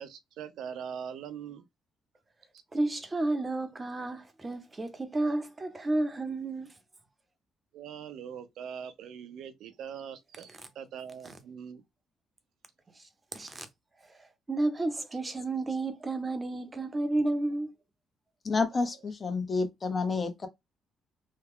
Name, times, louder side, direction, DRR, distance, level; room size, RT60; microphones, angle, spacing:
voice 1, 0.0-1.6 7.7-11.8, right 8 dB, 80° right, 0.6 m, -42 dB
voice 2, 2.7-6.7 13.3-13.7 14.5-17.7, right 2 dB, 25° right, 0.8 m, -31 dB
voice 3, 18.4-20.5, left 4 dB, 35° left, 0.8 m, -29 dB
3.1 x 2.2 x 3.6 m
cardioid pair, 90°, 0 cm